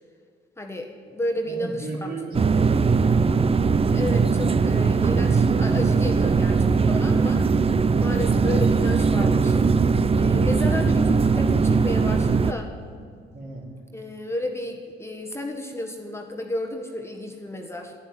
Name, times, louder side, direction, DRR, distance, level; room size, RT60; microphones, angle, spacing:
voice 1, 0.6-2.2 3.9-7.5 8.0-9.6 10.1-12.7 13.9-17.9, left 1 dB, 15° left, 2 dB, 1.5 m, -32 dB
voice 2, 1.4-3.1 13.3-13.7, right 2 dB, 50° right, -1 dB, 3.8 m, -35 dB
sound 1, 2.3-12.5, right 4 dB, 30° right, 0.6 m, -20 dB
11.5 x 11.5 x 9.7 m, 2.2 s
cardioid pair, 90°, 20 cm